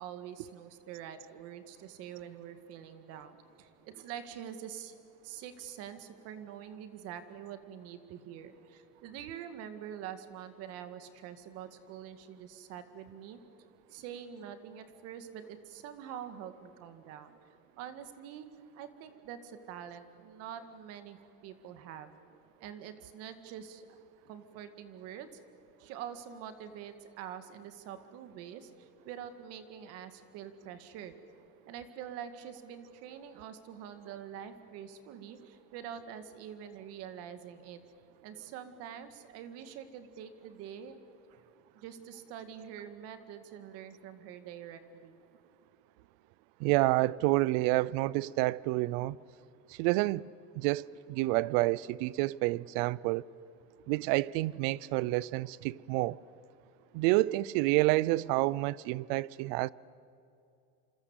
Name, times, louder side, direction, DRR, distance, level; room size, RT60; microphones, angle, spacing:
voice 1, 0.0-4.9 5.2-13.4 13.9-17.3 17.8-18.5 18.7-22.1 22.6-23.9 24.3-25.3 25.8-31.1 31.7-37.8 38.2-41.0 41.3-41.5 41.8-45.2, right 9 dB, 55° right, 2.0 m, -45 dB
voice 2, 46.6-49.2 49.7-50.3 50.5-53.2 53.9-56.2 56.9-59.7, right 19 dB, 80° right, 0.6 m, -29 dB
27.0 x 26.0 x 8.2 m
cardioid pair, 170°, 29 cm